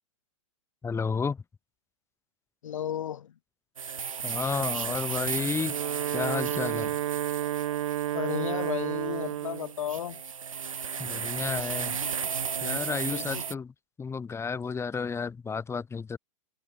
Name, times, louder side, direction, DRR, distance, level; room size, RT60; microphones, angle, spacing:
voice 1, 0.8-1.4 4.2-5.7 6.1-6.9 11.0-12.0 12.6-13.7 14.0-16.2, left 5 dB, 15° left, 4.6 m, -32 dB
voice 2, 2.6-3.3 8.1-10.2 12.0-12.3 13.1-13.5, left 10 dB, 75° left, 2.0 m, -34 dB
sound 1, 3.8-13.5, right 6 dB, 90° right, 1.8 m, -34 dB
Wind instrument woodwind instrument, 5.5-9.7, right 12 dB, 70° right, 1.2 m, -31 dB
hypercardioid pair, 110°, 17 cm